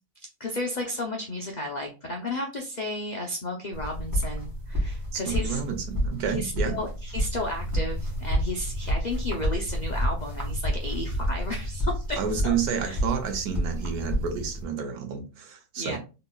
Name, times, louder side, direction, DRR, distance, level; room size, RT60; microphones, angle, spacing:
voice 1, 0.4-5.6 6.3-12.2 12.4-12.5 12.8-13.0 15.8-16.0, left 2 dB, 80° left, 0.4 m, -33 dB
sound 1, 3.7-14.6, equal, 15° right, 1.1 m, -29 dB
voice 2, 5.1-6.8 12.2-16.0, right 7 dB, 80° right, 1.3 m, -30 dB
3.9 x 2.8 x 2.3 m
omnidirectional pair, 1.6 m